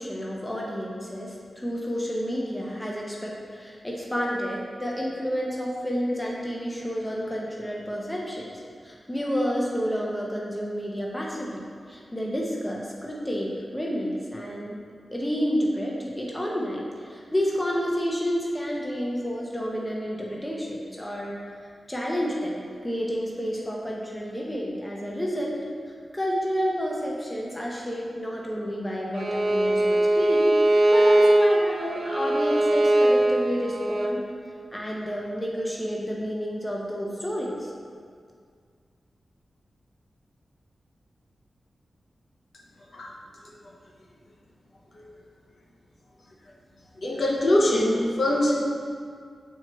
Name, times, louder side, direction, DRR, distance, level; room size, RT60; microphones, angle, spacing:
voice 1, 0.0-11.6 11.9-14.8 15.1-21.3 21.9-25.6 26.1-34.2 34.7-37.7, equal, 10° left, -3 dB, 0.6 m, -30 dB
Bowed string instrument, 29.1-34.2, right 1 dB, 65° right, 0.5 m, -21 dB
voice 2, 47.0-48.6, left 1 dB, 55° left, -3 dB, 0.9 m, -22 dB
7.7 x 4.5 x 2.9 m, 2.1 s
wide cardioid pair, 155°, 0 cm